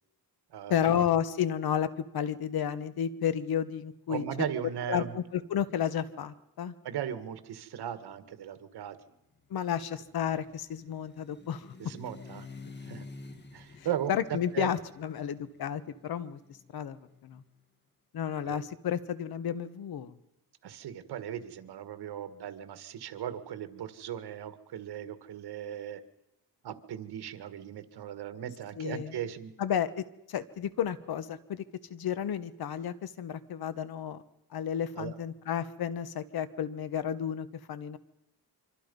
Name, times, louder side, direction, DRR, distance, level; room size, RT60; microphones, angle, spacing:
voice 1, 0.7-4.3 4.9-6.7 9.5-11.7 13.8-16.4 16.7-17.4 18.1-20.2 28.8-29.1 29.6-31.6 31.9-34.2 34.5-38.0, left 9 dB, 70° left, 13 dB, 1.3 m, -32 dB
voice 2, 4.1-5.2 6.8-9.0 11.8-12.5 12.8-13.1 13.5-14.7 18.4-18.6 20.6-26.0 26.6-29.5 35.0-35.1, right 10 dB, 80° right, 10 dB, 1.8 m, -37 dB
sound 1, 9.5-17.5, left 4 dB, 25° left, 1.7 m, -50 dB
25.0 x 24.0 x 5.4 m, 0.91 s
cardioid pair, 135°, 39 cm